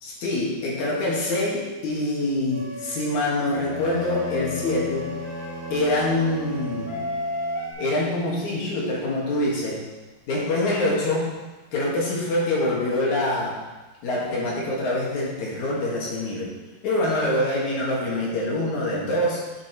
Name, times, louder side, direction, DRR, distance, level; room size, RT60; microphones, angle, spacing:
voice 1, 0.0-5.1 5.7-6.9 7.8-9.8 10.3-11.3 11.7-13.5 14.0-16.5 16.8-19.4, left 1 dB, 60° left, -4 dB, 2.8 m, -25 dB
sound 1, 2.5-3.1 3.7-7.7, left 1 dB, 30° left, 3.7 m, -33 dB
Bowed string instrument, 3.5-7.9, left 3 dB, 75° right, 3.4 m, -37 dB
9.1 x 8.7 x 3.0 m, 1.2 s
omnidirectional pair, 4.2 m